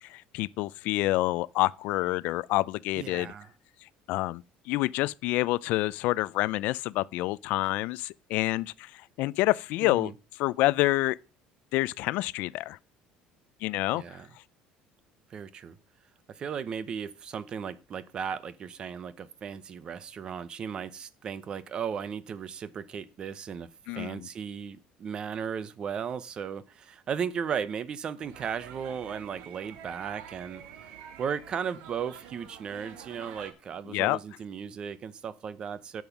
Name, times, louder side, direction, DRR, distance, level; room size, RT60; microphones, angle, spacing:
voice 1, 0.0-3.3 4.1-8.9 9.2-10.1 10.4-11.2 11.7-12.8 13.6-14.0 23.9-24.3 33.9-34.2, left 19 dB, 65° left, 0.4 m, -27 dB
voice 2, 2.9-3.5 9.8-10.1 13.9-14.3 15.3-15.8 16.3-23.7 23.9-30.9 31.2-36.0, right 7 dB, 30° right, 0.8 m, -36 dB
sound 1, 28.2-33.5, right 9 dB, 85° right, 2.0 m, -47 dB
10.5 x 7.1 x 5.9 m
cardioid pair, 160°, 3 cm